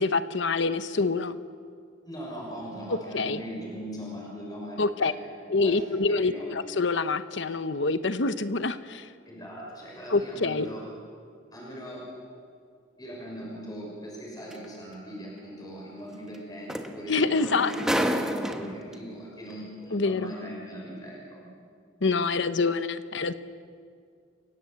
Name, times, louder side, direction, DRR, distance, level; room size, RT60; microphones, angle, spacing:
voice 1, 0.0-1.4 3.1-3.4 4.8-5.1 5.5-9.1 10.1-10.7 17.1-17.7 19.9-20.3 22.0-23.3, left 3 dB, 70° left, 12 dB, 0.9 m, -26 dB
voice 2, 2.0-5.3 5.6-6.5 9.3-10.8 11.5-12.1 13.0-21.5, equal, 20° left, -3 dB, 6.2 m, -40 dB
sound 1, 14.5-14.6 16.3-16.4 16.7-18.9 19.9-20.0, equal, 5° right, 1.1 m, -29 dB
29.0 x 17.0 x 8.0 m, 2.2 s
head